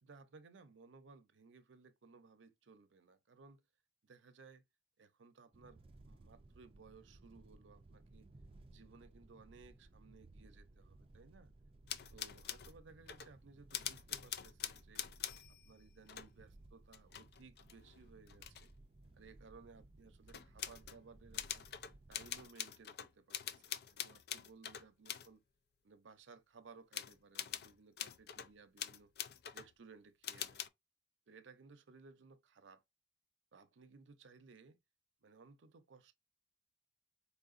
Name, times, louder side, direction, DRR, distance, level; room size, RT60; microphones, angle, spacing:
voice 1, 0.0-3.6 4.0-4.6 5.0-8.3 8.7-11.5 12.1-15.1 15.5-18.7 19.1-21.7 22.1-25.4 25.8-29.1 29.5-30.7 31.3-32.8 33.5-34.8 35.2-36.2, right 4 dB, 80° right, 0.6 m, -60 dB
sound 1, 5.5-22.5, right 2 dB, 30° right, 0.4 m, -61 dB
sound 2, 11.9-12.8 13.1-13.3 13.7-15.7 16.1-16.3 16.9-18.7 20.3-21.0 21.3-25.3 26.9-28.5 28.8-29.7 30.2-30.7, left 10 dB, 55° left, 0.4 m, -45 dB
4.3 x 2.8 x 2.5 m
head